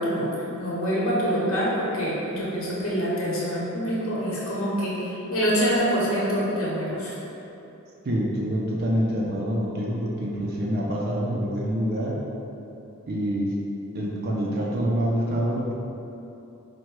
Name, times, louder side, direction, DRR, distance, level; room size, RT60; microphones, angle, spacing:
voice 1, 0.0-7.1, equal, 75° left, -6 dB, 1.1 m, -26 dB
voice 2, 8.0-12.2 13.1-13.6 13.9-15.7, equal, 45° right, -3 dB, 0.4 m, -26 dB
4.4 x 2.2 x 4.6 m, 2.9 s
head